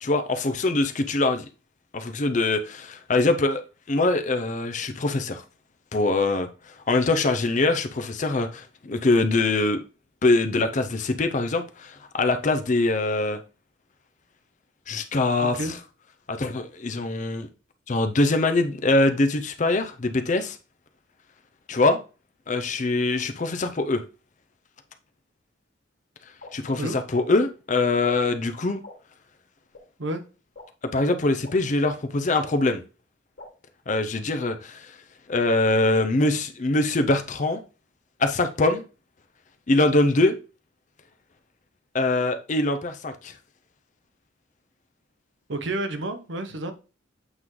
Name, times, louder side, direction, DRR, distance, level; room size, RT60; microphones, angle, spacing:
voice 1, 0.0-1.5 1.9-3.6 3.9-5.4 5.9-6.5 6.9-9.8 10.2-13.4 14.9-15.8 16.3-17.5 17.9-20.6 21.7-22.0 22.5-24.0 26.5-28.8 30.9-32.8 33.9-34.9 35.3-37.6 38.2-38.8 39.7-40.4 41.9-43.3, left 2 dB, 40° left, 0.5 m, -23 dB
voice 2, 15.4-15.7 26.8-27.0 30.0-30.2 45.5-46.7, right 1 dB, 70° right, 0.9 m, -30 dB
sound 1, 26.4-26.5 27.2-27.3 28.0-28.1 28.8-28.9 29.7-29.8 30.5-30.6 31.4-31.5 32.4-32.5 33.4-33.5, left 3 dB, 55° left, 2.1 m, -42 dB
8.1 x 3.2 x 3.7 m
head